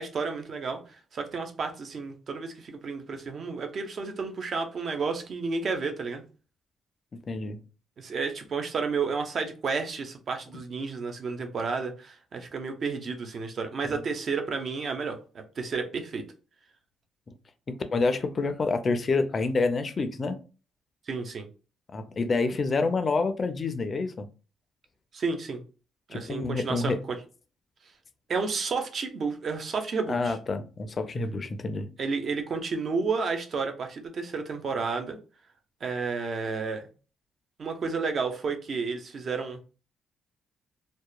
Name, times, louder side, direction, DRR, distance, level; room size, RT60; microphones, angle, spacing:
voice 1, 0.0-6.2 8.0-16.2 21.1-21.5 25.1-25.6 26.1-27.2 28.3-30.4 32.0-35.2 35.8-36.9 37.6-39.6, right 4 dB, 50° right, 0.5 m, -31 dB
voice 2, 7.1-7.6 17.7-20.4 21.9-24.3 26.1-27.0 30.1-31.9, left 3 dB, 40° left, 0.4 m, -28 dB
2.8 x 2.1 x 2.2 m
cardioid pair, 90°, 0 cm